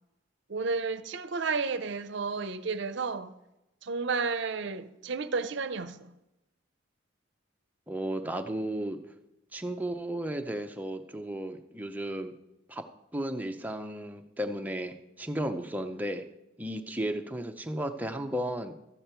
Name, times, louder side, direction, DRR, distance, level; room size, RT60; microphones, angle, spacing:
voice 1, 0.5-3.3 3.8-6.1, right 4 dB, 60° right, 0.6 m, -32 dB
voice 2, 7.9-9.0 9.5-12.3 12.7-12.8 13.1-16.2 16.6-18.7, right 1 dB, 10° right, 0.6 m, -34 dB
13.0 x 8.5 x 4.5 m
head